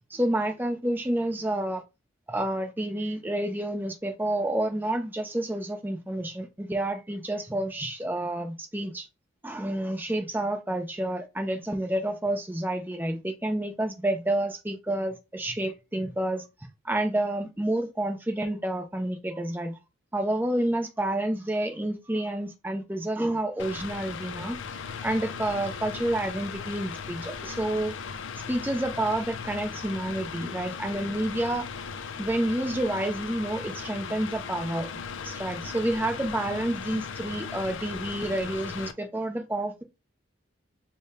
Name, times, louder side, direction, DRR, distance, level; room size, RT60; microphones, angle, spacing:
voice 1, 0.1-1.8 2.3-9.1 9.4-16.4 16.8-19.8 20.1-24.6 25.0-27.9 28.5-31.7 32.2-34.9 35.2-39.8, right 1 dB, 10° right, 0.5 m, -29 dB
Mechanical fan, 23.6-38.9, left 6 dB, 70° left, 0.4 m, -37 dB
3.6 x 2.1 x 4.2 m
head